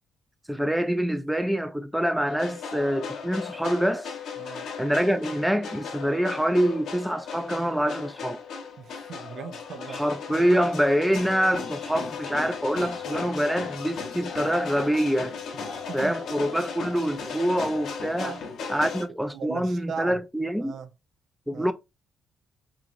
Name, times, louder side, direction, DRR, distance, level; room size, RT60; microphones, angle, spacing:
voice 1, 0.5-4.2 4.8-8.4 9.9-15.4 15.9-18.4 18.7-20.8 21.5-21.7, equal, 5° right, 0.3 m, -25 dB
sound 1, 2.3-19.0, left 5 dB, 70° left, 0.8 m, -36 dB
voice 2, 4.4-4.7 8.8-10.0 15.8-16.1 18.2-18.4 18.7-18.8 19.3-20.2 20.6-20.9 21.5-21.7, right 6 dB, 65° right, 0.5 m, -38 dB
2.9 x 2.5 x 2.5 m
cardioid pair, 90°, 0 cm